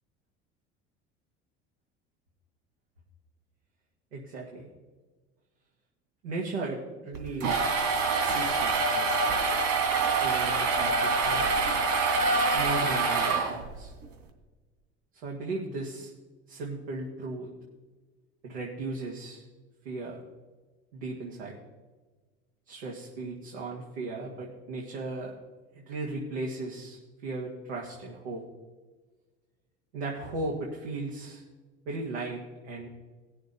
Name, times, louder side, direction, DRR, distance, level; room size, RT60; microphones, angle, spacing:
voice 1, 4.1-4.7 6.2-7.7 8.3-9.4 10.2-11.5 12.5-13.9 15.2-16.1 16.5-17.5 18.4-19.5 19.8-20.2 20.9-21.6 22.7-25.3 25.7-28.4 29.9-31.4 31.9-32.9, right 3 dB, 85° right, -3 dB, 2.0 m, -36 dB
sound 1, 7.1-13.8, right 4 dB, 60° right, 2.8 m, -26 dB
18.5 x 6.7 x 4.0 m, 1.3 s
hypercardioid pair, 75°, 31 cm